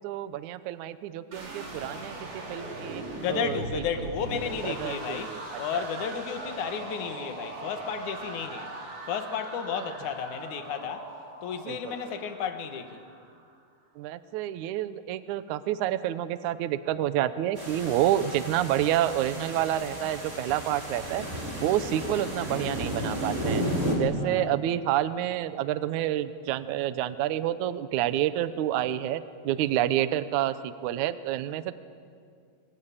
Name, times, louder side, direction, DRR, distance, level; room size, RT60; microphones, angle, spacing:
voice 1, 0.0-3.0 3.3-3.6 4.6-5.4 5.7-5.9 9.7-9.8 11.7-12.0 14.0-21.2 21.6-23.6 24.0-31.7, right 12 dB, 75° right, 13 dB, 1.8 m, -28 dB
sound 1, 1.3-13.4, right 2 dB, 40° right, 4.6 m, -40 dB
voice 2, 3.2-8.7 9.1-11.1 11.4-13.0 24.2-24.5, left 7 dB, 60° left, 7 dB, 2.7 m, -33 dB
sound 2, 17.6-23.9, equal, 20° right, 5.3 m, -33 dB
29.0 x 23.0 x 8.7 m, 2.2 s
omnidirectional pair, 4.6 m